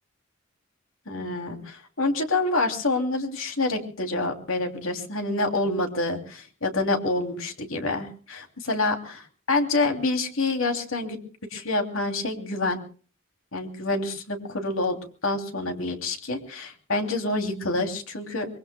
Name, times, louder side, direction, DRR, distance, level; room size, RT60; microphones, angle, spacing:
voice 1, 1.1-11.2 11.5-12.8 13.5-18.6, left 2 dB, 85° left, 4 dB, 2.8 m, -27 dB
24.5 x 23.0 x 2.2 m, 0.40 s
head